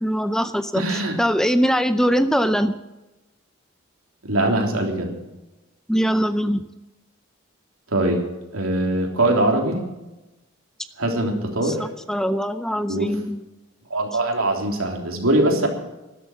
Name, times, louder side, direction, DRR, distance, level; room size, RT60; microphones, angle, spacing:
voice 1, 0.0-2.8 5.9-6.6 11.6-13.4, equal, 5° left, 11 dB, 0.5 m, -22 dB
voice 2, 0.7-1.2 4.2-5.1 7.9-8.2 8.5-9.8 11.0-11.8 12.9-13.1 13.9-15.7, right 1 dB, 85° right, 2 dB, 3.4 m, -22 dB
13.0 x 12.0 x 7.3 m, 1.0 s
head